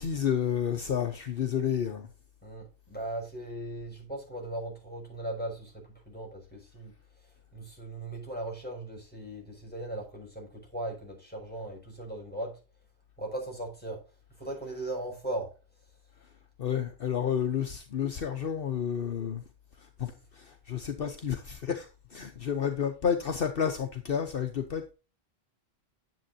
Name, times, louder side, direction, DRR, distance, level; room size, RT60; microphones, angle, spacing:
voice 1, 0.0-2.1 16.6-19.4 20.0-24.9, left 8 dB, 60° left, 1.1 m, -30 dB
voice 2, 2.4-6.9 7.5-12.6 13.2-14.0 14.4-15.5, right 1 dB, 10° left, 6.0 m, -38 dB
10.5 x 7.6 x 2.8 m
omnidirectional pair, 1.1 m